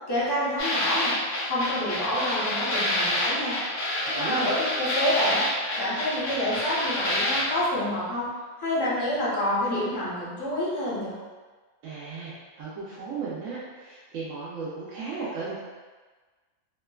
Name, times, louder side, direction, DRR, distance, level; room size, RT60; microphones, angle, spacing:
voice 1, 0.1-1.1 1.4-3.5 4.1-5.5 5.8-8.2 8.6-11.1, left 1 dB, 25° left, -8 dB, 0.6 m, -28 dB
sound 1, 0.6-7.4, left 1 dB, 85° left, 1.0 m, -28 dB
voice 2, 4.0-4.5 11.8-15.6, right 4 dB, 85° right, -8 dB, 1.0 m, -35 dB
2.9 x 2.2 x 2.2 m, 1.4 s
omnidirectional pair, 1.3 m